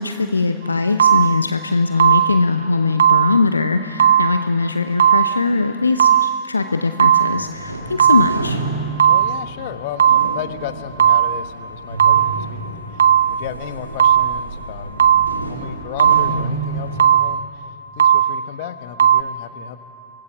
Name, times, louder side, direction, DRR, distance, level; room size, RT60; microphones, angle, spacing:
voice 1, 0.0-8.6, left 3 dB, 80° left, 9 dB, 0.7 m, -20 dB
sound 1, 1.0-1.6 2.0-2.6 3.0-3.6 4.0-4.6 5.0-5.6 6.0-6.6 7.0-7.6 8.0-8.6 9.0-9.6 10.0-10.6 11.0-11.6 12.0-12.6 13.0-13.6 14.0-14.6 15.0-15.6 16.0-16.6 17.0-17.6 18.0-18.6 19.0-19.2, right 9 dB, 65° right, 0.5 m, -16 dB
sound 2, 7.3-17.0, right 3 dB, 85° right, 2.0 m, -30 dB
voice 2, 9.0-19.8, left 10 dB, 50° left, 11 dB, 1.2 m, -34 dB
24.0 x 18.5 x 7.2 m, 2.7 s
figure-of-eight pair, 90°, 0 cm